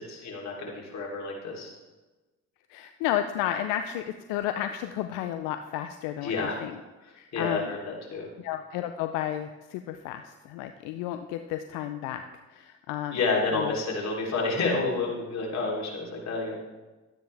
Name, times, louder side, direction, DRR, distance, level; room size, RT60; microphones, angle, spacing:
voice 1, 0.0-1.7 6.2-6.6 7.0-8.3 13.1-16.6, left 3 dB, 60° left, -2 dB, 3.3 m, -30 dB
voice 2, 2.7-6.8 7.2-7.8 8.4-12.2 12.5-13.2 13.5-13.7, left 11 dB, 90° left, 8 dB, 0.5 m, -32 dB
12.5 x 9.2 x 3.4 m, 1.2 s
supercardioid pair, 60°, 31 cm